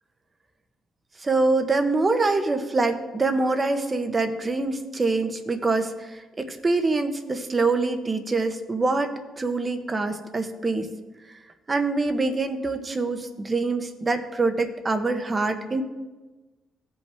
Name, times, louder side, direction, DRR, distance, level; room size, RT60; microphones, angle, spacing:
voice 1, 1.2-10.9 11.7-15.8, right 3 dB, 30° right, 7 dB, 0.9 m, -25 dB
16.0 x 5.5 x 3.5 m, 1.2 s
cardioid pair, 90°, 0 cm